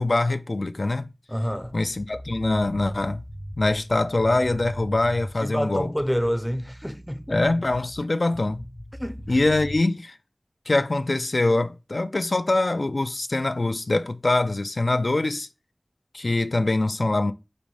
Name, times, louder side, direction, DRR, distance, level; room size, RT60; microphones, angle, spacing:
voice 1, 0.0-1.1 1.7-3.2 3.6-5.9 7.3-8.6 9.3-10.2 10.7-15.5 16.1-17.3, left 2 dB, 80° left, 0.3 m, -23 dB
voice 2, 1.3-1.7 5.4-7.4 9.0-9.3, equal, ahead, 0.4 m, -28 dB
sound 1, 1.5-5.4 5.8-8.0 8.3-9.8, equal, 55° left, 0.8 m, -39 dB
5.2 x 2.6 x 3.1 m
wide cardioid pair, 45°, 0 cm